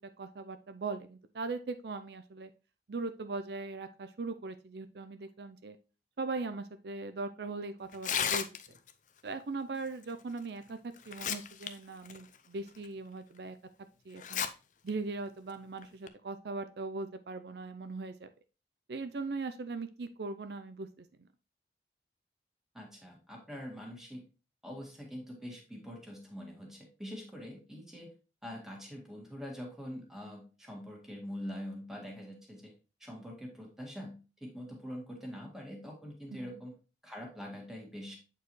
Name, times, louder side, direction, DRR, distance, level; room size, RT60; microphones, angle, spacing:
voice 1, 0.2-2.5 2.9-5.8 6.2-8.5 9.2-13.6 14.1-14.4 14.8-18.3 18.9-21.1 36.3-36.6, right 3 dB, 70° right, 9 dB, 0.5 m, -39 dB
Tearing, 7.9-8.9 10.4-10.5 11.0-11.7 12.0-12.2 12.8-12.9 14.2-14.5 14.9-15.0 15.8-16.1, left 8 dB, 45° left, 0.5 m, -33 dB
voice 2, 22.7-24.2 24.6-28.1 28.4-32.7 33.0-36.7 37.0-38.2, equal, 5° right, -1 dB, 1.8 m, -44 dB
8.2 x 4.6 x 3.1 m, 0.33 s
head